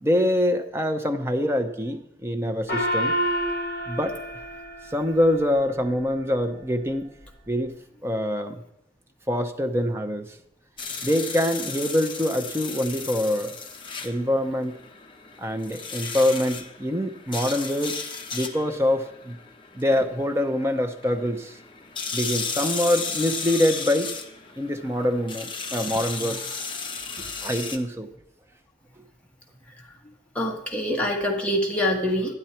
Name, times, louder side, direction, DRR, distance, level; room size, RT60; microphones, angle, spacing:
voice 1, 0.0-3.1 3.9-4.2 4.9-7.1 7.5-7.7 8.0-8.6 9.3-10.3 11.0-13.5 14.0-14.8 15.4-18.0 18.3-19.4 19.7-21.6 22.1-24.1 24.6-26.4 27.4-28.1, left 1 dB, 15° right, 7 dB, 0.7 m, -25 dB
Gong, 2.7-5.6, equal, 55° left, 1.8 m, -28 dB
sound 1, 10.8-27.8, left 5 dB, 30° left, 1.0 m, -35 dB
voice 2, 30.3-32.3, left 1 dB, 5° left, -1 dB, 1.5 m, -25 dB
12.0 x 10.5 x 4.4 m, 0.79 s
head